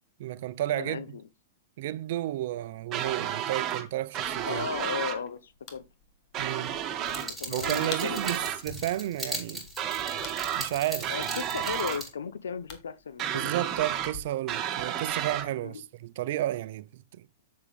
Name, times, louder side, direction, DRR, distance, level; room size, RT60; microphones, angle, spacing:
voice 1, 0.2-1.0 1.8-4.7 6.4-6.8 7.5-9.7 10.6-11.3 13.3-17.3, right 14 dB, 60° right, 0.7 m, -32 dB
voice 2, 0.8-1.2 4.4-5.8 6.7-8.5 11.1-13.5 15.6-15.8, left 6 dB, 85° left, 1.0 m, -36 dB
sound 1, 2.9-3.8 4.1-5.2 6.3-7.3 7.6-8.6 9.8-10.7 11.0-12.0 13.2-14.1 14.5-15.5, right 10 dB, 30° right, 1.9 m, -32 dB
sound 2, 4.2-14.2, left 5 dB, 35° left, 2.3 m, -50 dB
sound 3, 7.1-12.1, equal, 5° left, 5.2 m, -39 dB
8.1 x 7.3 x 3.3 m
hypercardioid pair, 125°, 0 cm